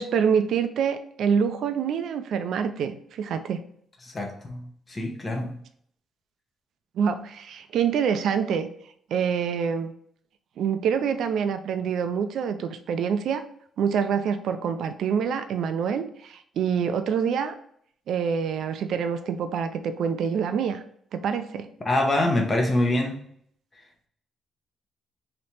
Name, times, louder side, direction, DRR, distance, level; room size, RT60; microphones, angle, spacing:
voice 1, 0.0-3.6 7.0-8.7 9.1-9.9 10.6-13.4 13.8-17.6 18.1-20.8 21.1-21.7, right 7 dB, 70° right, 9 dB, 0.4 m, -26 dB
voice 2, 4.0-5.6 21.8-23.2, left 1 dB, 25° left, 1 dB, 0.8 m, -25 dB
3.2 x 2.8 x 4.3 m, 0.65 s
cardioid pair, 90°, 0 cm